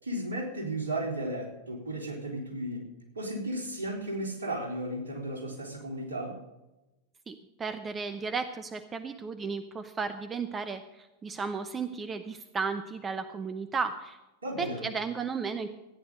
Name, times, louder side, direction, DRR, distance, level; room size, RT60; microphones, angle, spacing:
voice 1, 0.0-2.8 3.1-6.3 14.4-14.9, right 1 dB, 70° right, 0 dB, 3.9 m, -34 dB
voice 2, 7.3-14.2 14.6-15.7, right 5 dB, 20° right, 9 dB, 0.8 m, -34 dB
14.5 x 10.0 x 5.2 m, 0.99 s
figure-of-eight pair, 90°, 0 cm